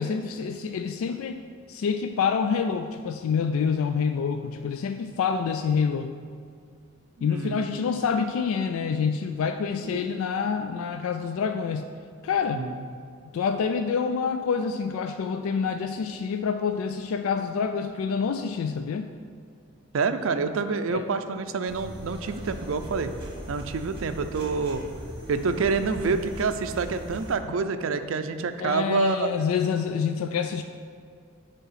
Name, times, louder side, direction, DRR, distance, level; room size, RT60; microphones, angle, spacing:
voice 1, 0.0-1.4 1.7-6.1 7.2-11.9 12.2-12.6 13.3-19.1 20.9-21.0 28.6-30.6, left 6 dB, 80° left, 7 dB, 0.3 m, -27 dB
voice 2, 7.2-7.6 9.8-10.0 12.5-12.7 19.9-23.1 23.5-24.8 25.3-29.3, right 4 dB, 70° right, 9 dB, 0.4 m, -27 dB
sound 1, 21.7-27.3, equal, 25° right, 1.7 m, -39 dB
9.4 x 3.5 x 5.7 m, 2.2 s
head